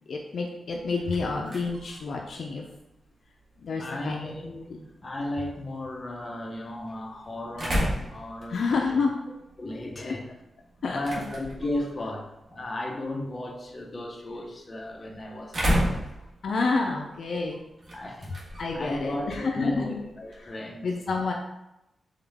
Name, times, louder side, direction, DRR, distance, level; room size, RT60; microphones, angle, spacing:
voice 1, 0.1-2.6 3.6-4.3 8.5-9.1 10.0-10.1 10.8-11.0 16.4-17.6 18.6-20.0 20.8-21.3, left 4 dB, 65° left, 1 dB, 0.4 m, -28 dB
sound 1, 0.7-20.5, equal, 50° right, 1.4 m, -36 dB
voice 2, 3.8-9.0 9.6-10.2 10.9-16.1 16.8-17.0 17.9-18.3 18.7-20.9, left 1 dB, 30° left, 1 dB, 0.7 m, -35 dB
4.0 x 3.7 x 3.5 m, 0.92 s
cardioid pair, 95°, 0 cm